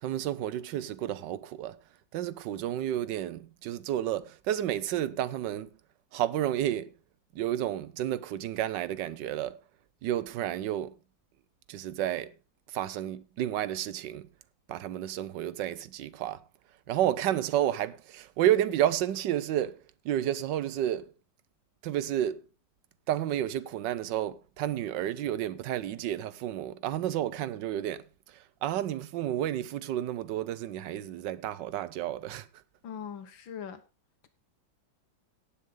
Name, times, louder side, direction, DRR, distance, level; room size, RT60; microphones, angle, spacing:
voice 1, 0.0-1.8 2.1-5.7 6.1-6.9 7.3-9.6 10.0-10.9 11.7-12.3 12.7-14.3 14.7-16.4 16.9-21.1 21.8-22.4 23.1-32.5, right 12 dB, 75° right, 1.3 m, -31 dB
voice 2, 32.8-33.8, left 7 dB, 85° left, 2.0 m, -40 dB
18.0 x 6.4 x 3.7 m
omnidirectional pair, 2.1 m